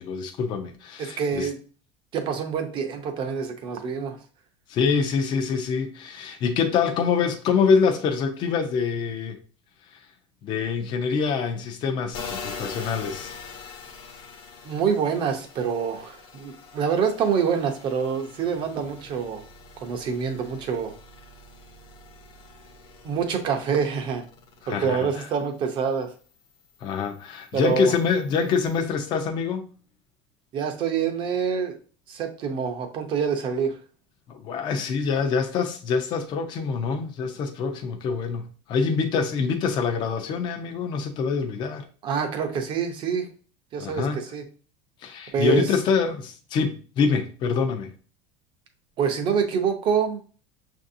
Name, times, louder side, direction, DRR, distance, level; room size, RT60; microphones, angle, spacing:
voice 1, 0.0-1.5 4.7-9.4 10.4-13.4 24.7-25.3 26.8-29.7 34.3-41.8 43.8-44.2 45.0-47.9, left 5 dB, 30° left, 0.5 m, -25 dB
voice 2, 1.0-1.6 2.1-4.2 14.6-19.4 19.8-20.9 23.0-24.2 24.7-26.1 27.5-27.9 30.5-31.8 32.1-33.8 42.0-43.3 43.7-44.4 45.3-45.7 49.0-50.2, right 6 dB, 30° right, 0.6 m, -26 dB
sound 1, 12.1-25.5 25.9-28.8, left 5 dB, 65° left, 1.1 m, -43 dB
6.2 x 2.6 x 2.6 m
cardioid pair, 165°, 15 cm